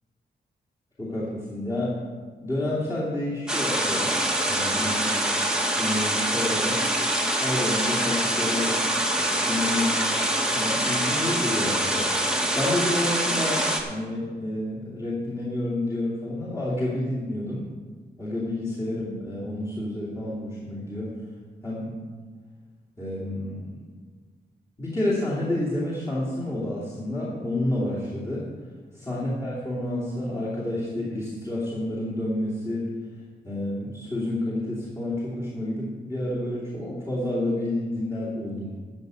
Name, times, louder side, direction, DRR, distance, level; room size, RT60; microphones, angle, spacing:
voice 1, 1.0-2.0 2.4-4.1 4.4-5.3 5.8-6.8 7.4-8.8 9.5-9.9 10.5-17.6 18.2-21.1 21.6-21.9 23.0-23.7 24.8-28.4 28.9-32.9 33.4-38.7, left 1 dB, 20° left, -8 dB, 2.8 m, -29 dB
sound 1, 3.5-13.8, right 1 dB, 5° right, 1.3 m, -25 dB
13.5 x 5.4 x 8.1 m, 1.5 s
wide cardioid pair, 170°, 18 cm